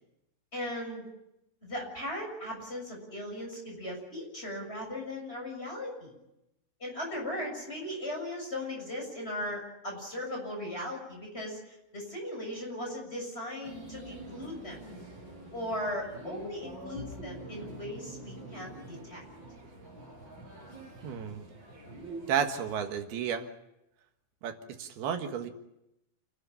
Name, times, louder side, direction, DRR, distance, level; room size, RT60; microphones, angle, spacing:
voice 1, 0.5-1.1 1.6-6.1 6.8-14.9 15.5-19.2, left 1 dB, 15° left, 0 dB, 7.2 m, -38 dB
sound 1, 13.6-22.9, right 2 dB, 30° right, 7.5 m, -46 dB
voice 2, 21.0-21.5 22.3-23.5 24.4-25.5, right 8 dB, 75° right, 6 dB, 3.5 m, -32 dB
28.5 x 13.0 x 10.0 m, 0.88 s
omnidirectional pair, 4.6 m